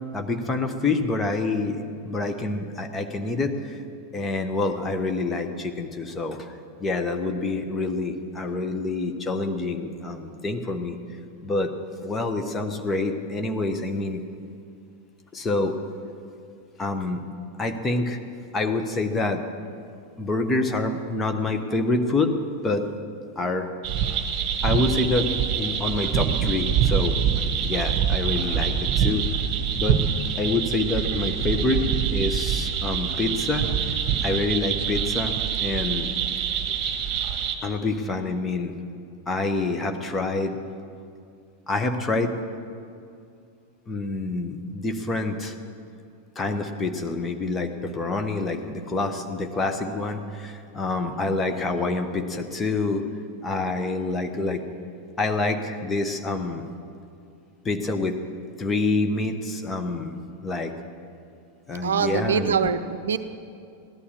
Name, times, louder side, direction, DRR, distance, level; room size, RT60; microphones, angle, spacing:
voice 1, 0.1-3.8 4.1-6.5 6.8-11.0 11.4-11.7 12.0-14.2 15.3-15.8 16.8-17.2 17.6-18.2 18.5-19.4 20.2-22.4 22.6-22.9 23.4-23.7 24.6-25.3 25.6-27.2 27.6-29.3 29.8-30.0 30.4-34.0 34.2-35.3 35.6-36.1 37.6-38.7 39.3-40.6 41.7-42.3 43.9-45.5 46.4-53.0 53.4-54.6 55.2-56.6 57.6-58.2 58.6-60.7 61.7-62.7, left 3 dB, 15° left, 5 dB, 1.2 m, -27 dB
sound 1, 23.8-37.5, right 8 dB, 35° right, 1.5 m, -25 dB
voice 2, 61.8-63.2, right 7 dB, 65° right, 11 dB, 0.5 m, -24 dB
16.0 x 11.5 x 6.5 m, 2.4 s
figure-of-eight pair, 90°, 0 cm